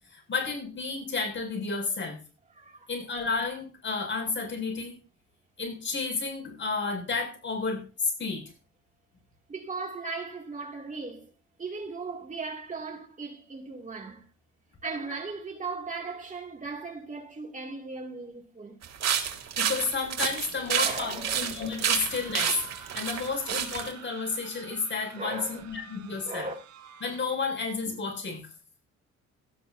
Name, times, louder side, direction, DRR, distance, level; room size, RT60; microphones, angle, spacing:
voice 1, 0.1-2.2 2.9-5.0 5.6-8.4 19.6-26.5 27.0-28.4, left 4 dB, 40° left, 7.4 m, -31 dB
voice 2, 2.5-2.9 9.5-11.3 11.6-14.2 14.8-18.8 20.7-21.6 25.2-25.6 26.2-26.5, right 4 dB, 25° right, 2.9 m, -37 dB
sound 1, 18.8-23.9, right 8 dB, 60° right, 3.1 m, -29 dB
sound 2, 21.9-27.6, right 8 dB, 80° right, 4.8 m, -49 dB
18.5 x 12.5 x 2.8 m
cardioid pair, 140°, 29 cm